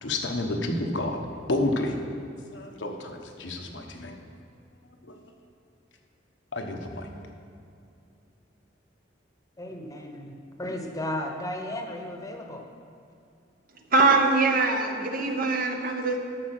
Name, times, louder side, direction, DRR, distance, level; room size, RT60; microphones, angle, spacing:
voice 1, 0.0-1.9 2.5-4.2 5.1-5.2 6.5-7.1, left 2 dB, 80° left, 3 dB, 1.1 m, -30 dB
voice 2, 9.6-12.6, left 1 dB, 20° left, 3 dB, 1.0 m, -34 dB
voice 3, 13.9-16.2, right 3 dB, 50° right, 3 dB, 0.9 m, -22 dB
13.5 x 5.0 x 5.9 m, 2.6 s
head